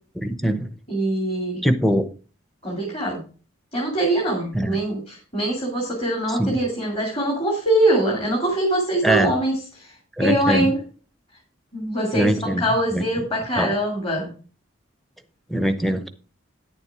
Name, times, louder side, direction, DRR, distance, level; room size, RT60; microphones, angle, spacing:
voice 1, 0.2-0.7 1.6-2.1 4.5-4.8 6.3-6.6 9.0-9.3 10.2-10.7 12.1-12.6 12.9-13.0 13.6-13.7 15.5-16.1, right 1 dB, ahead, 9 dB, 0.7 m, -22 dB
voice 2, 0.9-1.6 2.6-3.2 3.7-10.8 11.7-14.3, right 1 dB, 30° left, -1 dB, 2.5 m, -23 dB
9.7 x 7.0 x 4.7 m, 0.38 s
head